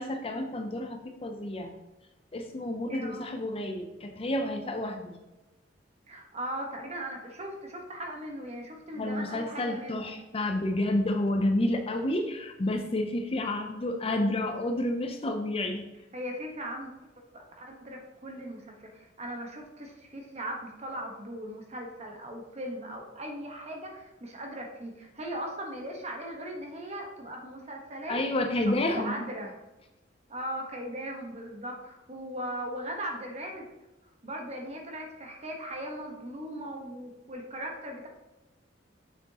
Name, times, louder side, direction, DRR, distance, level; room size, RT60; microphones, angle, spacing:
voice 1, 0.0-1.8 2.3-5.2 9.0-15.9 28.1-29.1, left 1 dB, 30° left, 5 dB, 0.6 m, -30 dB
voice 2, 2.9-3.2 6.1-10.2 16.1-16.9 17.3-28.2 28.9-29.6 30.3-33.7 34.2-38.1, right 1 dB, 35° right, 1 dB, 1.2 m, -38 dB
6.8 x 6.7 x 2.9 m, 1.0 s
head